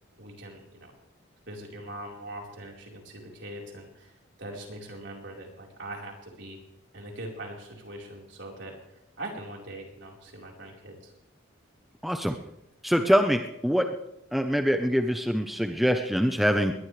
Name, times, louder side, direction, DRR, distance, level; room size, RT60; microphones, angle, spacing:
voice 1, 0.2-0.9 1.5-4.1 4.4-6.6 6.9-11.1, right 1 dB, 65° right, -1 dB, 4.5 m, -42 dB
voice 2, 12.0-12.3 12.8-13.8 14.3-16.7, equal, ahead, 5 dB, 0.8 m, -24 dB
21.0 x 20.5 x 3.4 m, 0.86 s
head